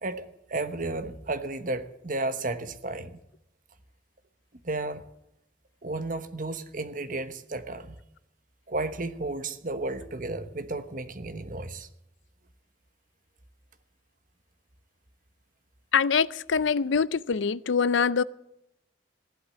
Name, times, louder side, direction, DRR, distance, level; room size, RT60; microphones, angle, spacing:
voice 1, 0.0-3.2 4.6-5.1 5.8-8.0 8.7-11.9, right 2 dB, 45° right, 1.1 m, -33 dB
voice 2, 15.9-18.2, left 6 dB, 85° left, 0.5 m, -24 dB
15.0 x 11.5 x 7.5 m
head